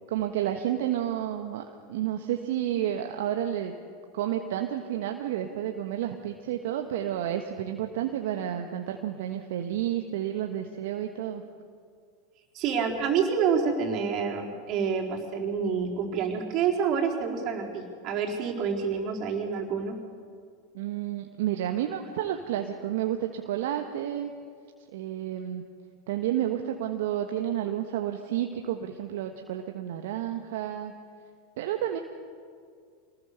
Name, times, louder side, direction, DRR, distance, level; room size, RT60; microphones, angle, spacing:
voice 1, 0.1-3.7 4.1-11.4 20.7-24.3 24.9-25.6 26.1-30.9 31.6-32.0, right 11 dB, 65° right, 5 dB, 1.3 m, -30 dB
voice 2, 12.5-20.0, right 6 dB, 45° right, 0 dB, 4.2 m, -28 dB
25.5 x 19.5 x 6.7 m, 2.2 s
hypercardioid pair, 85°, 0 cm